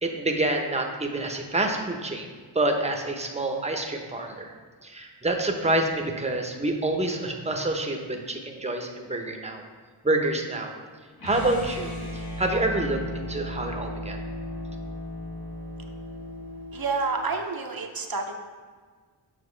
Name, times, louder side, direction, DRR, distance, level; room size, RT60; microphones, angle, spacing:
voice 1, 0.0-2.3 2.5-4.5 4.8-9.6 10.0-10.7 11.2-14.2, right 2 dB, 15° right, 3 dB, 0.8 m, -27 dB
sound 1, 11.2-17.2, left 1 dB, 50° left, 1.4 m, -36 dB
voice 2, 16.7-18.3, right 4 dB, 50° right, 3 dB, 0.7 m, -29 dB
7.1 x 5.8 x 3.3 m, 1.5 s
wide cardioid pair, 65°, 45 cm